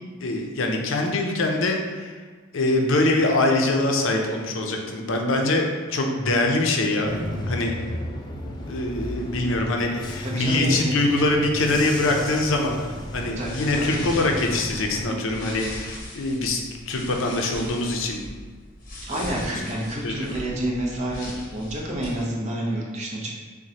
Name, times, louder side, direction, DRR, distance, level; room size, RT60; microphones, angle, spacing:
voice 1, 0.2-2.2 2.5-7.2 7.4-7.7 8.7-12.8 13.1-18.2 19.1-19.5 20.0-20.3, left 2 dB, 75° left, 2 dB, 0.5 m, -24 dB
Bus / Engine, 7.1-15.0, left 1 dB, 20° left, 0.3 m, -33 dB
voice 2, 10.2-11.2 13.4-14.1 19.0-23.3, right 1 dB, 35° right, -2 dB, 0.7 m, -29 dB
sound 1, 12.9-22.2, left 1 dB, 40° left, 0.8 m, -40 dB
6.0 x 2.2 x 2.8 m, 1.4 s
head